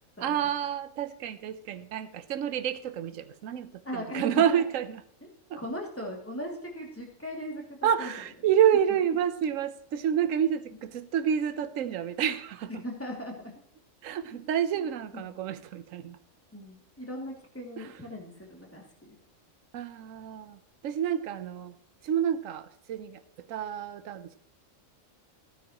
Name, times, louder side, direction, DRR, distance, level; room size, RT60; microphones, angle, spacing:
voice 1, 0.2-5.0 5.5-5.6 7.8-12.8 14.0-16.2 17.8-17.9 19.7-21.7 22.0-24.4, right 9 dB, 75° right, 12 dB, 1.1 m, -29 dB
voice 2, 3.8-4.6 5.6-8.1 12.7-13.5 14.7-14.9 15.1-15.3 16.5-19.2, equal, 10° left, 0 dB, 2.5 m, -39 dB
15.0 x 9.9 x 3.0 m, 0.69 s
omnidirectional pair, 1.4 m